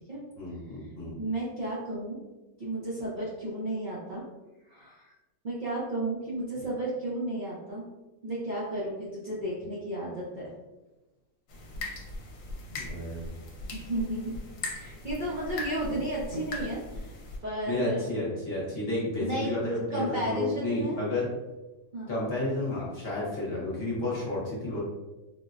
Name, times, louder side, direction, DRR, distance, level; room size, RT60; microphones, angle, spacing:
voice 1, 0.4-1.2 12.7-13.2 17.7-21.3 22.1-24.8, left 2 dB, 50° left, -6 dB, 1.0 m, -31 dB
voice 2, 1.2-2.2 2.6-4.2 4.7-5.1 5.4-7.9 8.2-10.5 13.7-14.3 14.7-17.1 17.4-18.1 19.2-19.6 19.9-21.0 21.9-22.2, right 1 dB, 45° right, -8 dB, 0.7 m, -33 dB
sound 1, 11.5-17.4, left 2 dB, 70° left, 1.0 m, -39 dB
3.7 x 2.1 x 2.5 m, 1.1 s
omnidirectional pair, 1.5 m